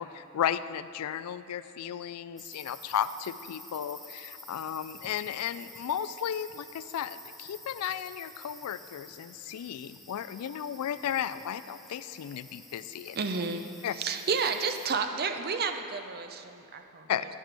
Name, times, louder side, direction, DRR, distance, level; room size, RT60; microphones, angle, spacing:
voice 1, 0.0-13.2 13.8-14.0 17.1-17.3, left 9 dB, 80° left, 14 dB, 0.3 m, -34 dB
sound 1, 2.4-14.9, left 1 dB, ahead, 0.8 m, -50 dB
voice 2, 13.2-13.7 13.9-17.1, right 5 dB, 45° right, 7 dB, 0.6 m, -31 dB
10.5 x 10.5 x 3.4 m, 2.9 s
head